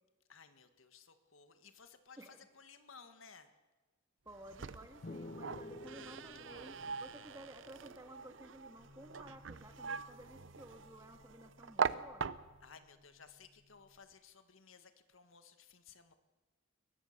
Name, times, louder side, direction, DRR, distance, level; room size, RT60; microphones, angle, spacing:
voice 1, 0.3-3.5 12.6-16.1, left 5 dB, 85° left, 9 dB, 1.7 m, -58 dB
voice 2, 4.3-12.2, right 1 dB, 15° right, 6 dB, 1.9 m, -54 dB
sound 1, 4.3-12.8, right 5 dB, 65° right, 0.7 m, -42 dB
sound 2, 5.0-8.6, left 2 dB, 40° left, 0.6 m, -51 dB
sound 3, 8.8-13.9, left 3 dB, 85° right, 4.7 m, -64 dB
23.0 x 20.0 x 6.7 m, 1.3 s
head